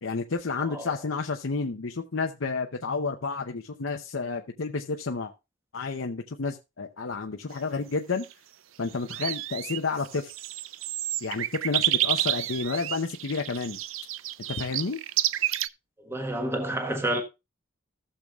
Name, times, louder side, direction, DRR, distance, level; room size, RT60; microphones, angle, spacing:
voice 1, 0.0-5.3 5.7-8.3 8.8-10.3 11.2-13.8 14.5-15.0, left 4 dB, 75° left, 0.7 m, -30 dB
voice 2, 0.6-0.9 16.0-17.2, right 1 dB, 15° right, 1.3 m, -29 dB
sound 1, 8.1-8.3 8.9-15.7, right 14 dB, 75° right, 0.4 m, -30 dB
15.0 x 6.9 x 2.3 m
head